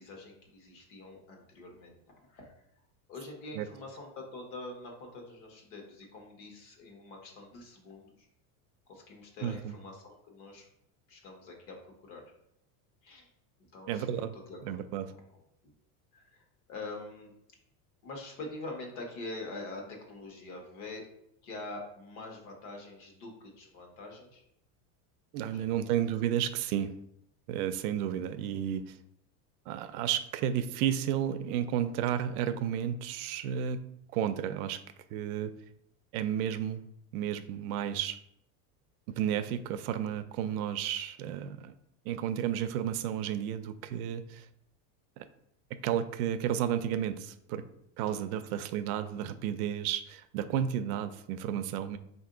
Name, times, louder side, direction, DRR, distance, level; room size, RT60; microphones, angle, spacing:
voice 1, 0.0-2.0 2.3-2.5 3.1-8.3 8.9-10.7 11.1-12.2 13.0-13.3 13.7-14.8 16.1-16.4 16.7-17.3 18.0-21.1 21.4-24.4 25.4-25.9 48.3-48.4, left 2 dB, 55° left, 1 dB, 1.2 m, -45 dB
voice 2, 9.4-9.7 13.9-14.3 14.6-15.1 25.3-27.0 27.5-29.0 29.7-33.8 34.1-34.8 35.1-35.5 36.1-36.8 37.1-38.2 39.2-41.7 42.1-44.5 45.8-47.6 48.0-52.0, right 10 dB, 85° right, 11 dB, 0.5 m, -32 dB
4.4 x 2.7 x 3.7 m, 0.75 s
cardioid pair, 170°, 43 cm